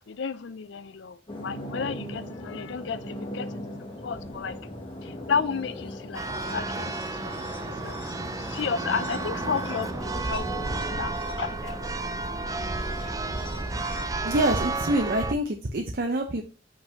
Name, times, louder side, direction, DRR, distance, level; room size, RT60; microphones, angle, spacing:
voice 1, 0.1-3.5 4.0-4.6 5.0-11.8 13.0-13.2, left 6 dB, 70° left, 0.5 m, -33 dB
sound 1, 1.3-14.0, left 1 dB, 30° left, 1.1 m, -39 dB
Church bell, 6.1-15.3, right 3 dB, 20° right, 0.4 m, -32 dB
voice 2, 14.2-16.4, right 1 dB, 55° right, 0.7 m, -26 dB
5.2 x 4.0 x 5.8 m
head